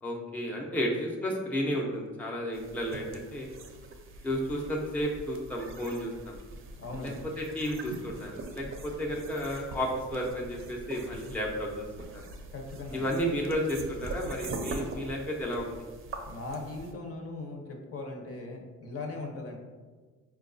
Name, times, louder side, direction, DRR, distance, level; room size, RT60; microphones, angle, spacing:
voice 1, 0.0-3.5 4.2-6.4 7.0-11.9 12.1-12.2 12.9-15.8, equal, 5° left, -2 dB, 0.5 m, -32 dB
sound 1, 2.5-16.9, right 2 dB, 45° right, 0.5 m, -43 dB
voice 2, 6.8-7.2 12.5-13.1 16.3-19.6, left 2 dB, 50° left, 2 dB, 0.7 m, -39 dB
4.5 x 2.3 x 2.5 m, 1.4 s
cardioid pair, 90°, 30 cm